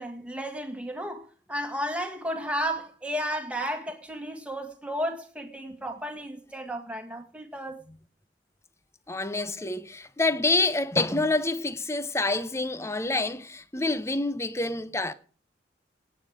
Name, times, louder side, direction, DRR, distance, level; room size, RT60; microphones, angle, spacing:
voice 1, 0.0-7.8, equal, 5° right, 1.9 m, -33 dB
voice 2, 9.1-15.1, left 2 dB, 15° left, 0.7 m, -27 dB
18.0 x 8.3 x 5.1 m
head